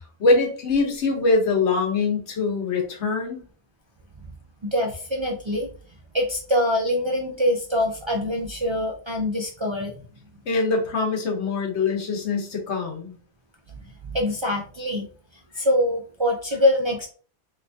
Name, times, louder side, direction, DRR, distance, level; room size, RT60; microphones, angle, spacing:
voice 1, 0.0-3.4 10.5-13.2, left 3 dB, 85° left, 2 dB, 1.2 m, -23 dB
voice 2, 4.6-5.7 6.1-10.0 13.7-15.1 15.5-17.1, left 1 dB, 40° right, 0 dB, 0.4 m, -24 dB
3.3 x 2.9 x 2.6 m, 0.40 s
omnidirectional pair, 1.1 m